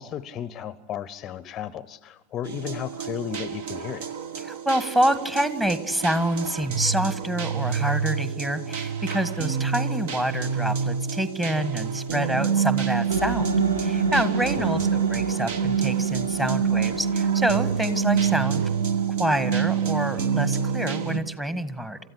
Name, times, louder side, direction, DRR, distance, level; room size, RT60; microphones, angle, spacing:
voice 1, 0.0-4.1 14.6-14.9, left 9 dB, 30° left, 18 dB, 0.7 m, -34 dB
sound 1, 2.4-21.2, right 7 dB, 55° right, 1.5 m, -27 dB
voice 2, 4.4-13.5 13.8-18.6 19.2-22.0, right 1 dB, 10° right, 12 dB, 1.6 m, -27 dB
sound 2, 13.1-20.4, right 2 dB, 70° right, 1.8 m, -32 dB
28.0 x 14.5 x 10.0 m, 1.1 s
figure-of-eight pair, 90°, 0 cm